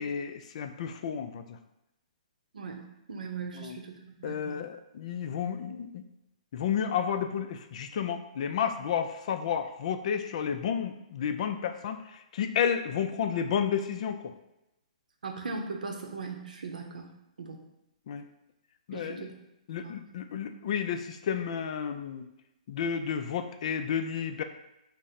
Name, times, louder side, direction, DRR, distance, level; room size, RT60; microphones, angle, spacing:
voice 1, 0.0-1.6 3.6-3.8 4.2-6.0 6.5-14.3 18.1-18.3 18.9-19.2 19.7-22.3 22.7-24.4, left 7 dB, 55° left, 8 dB, 0.3 m, -31 dB
voice 2, 2.5-4.6 15.2-17.1 17.4-17.6 18.9-19.3 19.8-19.9, right 4 dB, 90° right, 3 dB, 0.6 m, -39 dB
3.6 x 2.0 x 4.1 m, 0.89 s
hypercardioid pair, 145°, 4 cm